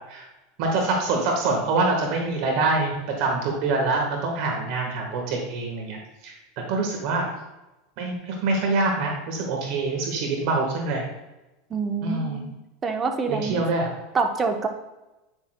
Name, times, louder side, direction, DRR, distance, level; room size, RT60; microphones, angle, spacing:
voice 1, 0.6-6.3 6.7-7.3 8.0-11.0 12.0-12.4 13.3-13.9, right 3 dB, 60° right, 1 dB, 1.3 m, -25 dB
voice 2, 11.7-12.6 12.8-13.6 14.1-14.7, right 4 dB, 25° right, 5 dB, 0.9 m, -26 dB
9.4 x 6.4 x 2.2 m, 1.0 s
supercardioid pair, 120°, 0 cm